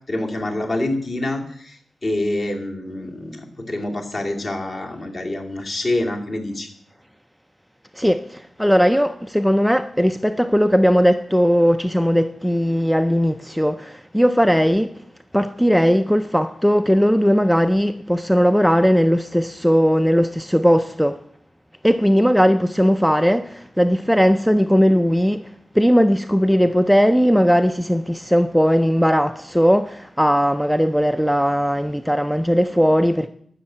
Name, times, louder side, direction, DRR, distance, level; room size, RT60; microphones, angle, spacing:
voice 1, 0.1-6.7, left 1 dB, 40° left, 2.3 m, -26 dB
voice 2, 8.0-14.9 15.3-21.2 21.8-25.5 25.7-33.3, equal, ahead, 0.4 m, -18 dB
12.0 x 6.4 x 8.6 m
wide cardioid pair, 150°, 0 cm